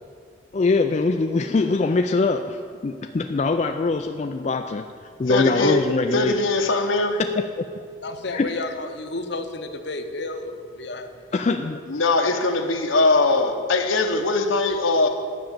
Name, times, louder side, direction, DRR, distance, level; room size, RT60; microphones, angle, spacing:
voice 1, 0.5-4.8 5.2-6.3 7.1-7.4 8.3-8.5 11.3-11.8, left 3 dB, 35° left, 5 dB, 0.3 m, -23 dB
voice 2, 5.3-5.8 6.1-7.2 11.9-15.1, left 3 dB, 85° left, 4 dB, 1.1 m, -21 dB
voice 3, 8.0-11.4, left 2 dB, 60° left, 6 dB, 0.8 m, -32 dB
10.5 x 6.2 x 8.7 m, 2.2 s
head